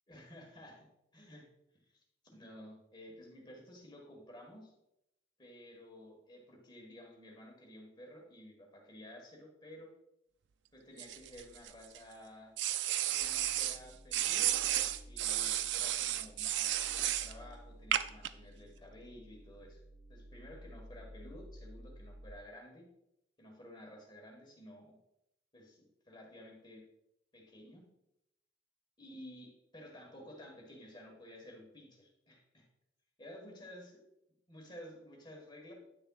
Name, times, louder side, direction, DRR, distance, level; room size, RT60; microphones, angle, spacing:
voice 1, 0.1-0.9 1.1-1.5 1.9-2.0 2.3-4.7 5.4-9.9 10.7-12.5 13.1-19.8 20.1-22.9 23.4-25.0 25.5-26.8 27.3-27.9 29.0-32.6 33.2-33.9 34.5-35.7, left 1 dB, 25° left, 0 dB, 1.5 m, -53 dB
sound 1, 11.0-12.0 12.6-13.8 14.1-17.3 17.9-18.3, right 12 dB, 70° right, 0.4 m, -33 dB
sound 2, 13.2-22.3, equal, 75° left, 1.2 m, -54 dB
9.8 x 6.6 x 2.4 m, 0.85 s
head